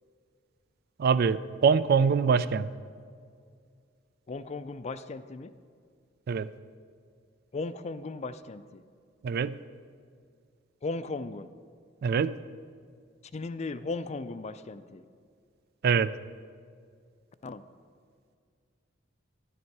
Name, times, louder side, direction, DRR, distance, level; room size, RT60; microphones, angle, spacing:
voice 1, 1.0-2.7 6.3-6.5 9.2-9.6 12.0-12.3 15.8-16.1, right 6 dB, 50° right, 15 dB, 0.3 m, -24 dB
voice 2, 4.3-5.5 7.5-8.8 10.8-11.5 13.3-15.0 17.4-17.6, left 3 dB, 35° left, 13 dB, 0.4 m, -36 dB
12.0 x 10.0 x 4.7 m, 2.2 s
head